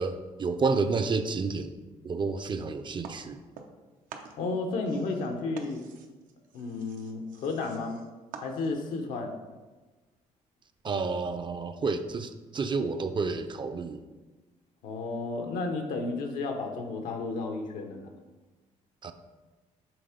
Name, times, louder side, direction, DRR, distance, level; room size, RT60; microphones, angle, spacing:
voice 1, 0.0-3.4 10.8-14.0 19.0-19.1, right 4 dB, 35° right, 8 dB, 0.5 m, -30 dB
sound 1, 3.0-3.8 4.1-9.0, right 6 dB, 80° right, 0.7 m, -48 dB
voice 2, 4.4-5.8 6.5-8.0 8.4-9.3 14.8-18.1, left 3 dB, 85° left, 4 dB, 0.9 m, -32 dB
6.1 x 3.7 x 5.0 m, 1.2 s
cardioid pair, 85°, 14 cm